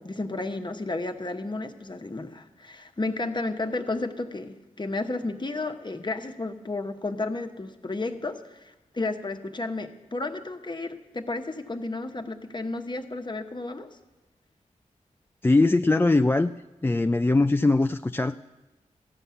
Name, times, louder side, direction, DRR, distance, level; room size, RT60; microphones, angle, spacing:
voice 1, 0.0-13.9, left 2 dB, 35° left, 6 dB, 1.1 m, -32 dB
voice 2, 15.4-16.5 16.8-18.4, left 2 dB, 15° left, 8 dB, 0.3 m, -21 dB
14.0 x 5.5 x 9.5 m, 1.1 s
cardioid pair, 40°, 13 cm